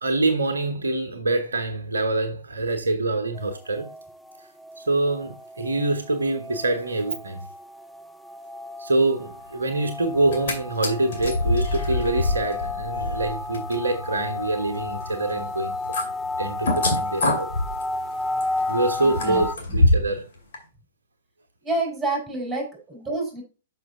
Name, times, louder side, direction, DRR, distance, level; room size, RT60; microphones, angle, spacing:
voice 1, 0.0-3.9 4.8-7.4 8.8-15.8 16.4-17.5 18.7-20.2, right 2 dB, 80° right, 1.1 m, -25 dB
sound 1, 3.3-19.6, left 2 dB, 5° left, 0.4 m, -33 dB
sound 2, 10.1-10.5 10.8-20.2 20.5-20.6, left 1 dB, 60° left, 2.5 m, -26 dB
voice 2, 19.0-19.9 21.6-23.4, right 2 dB, 10° right, 4.3 m, -29 dB
6.2 x 5.6 x 3.6 m
figure-of-eight pair, 110°, 0 cm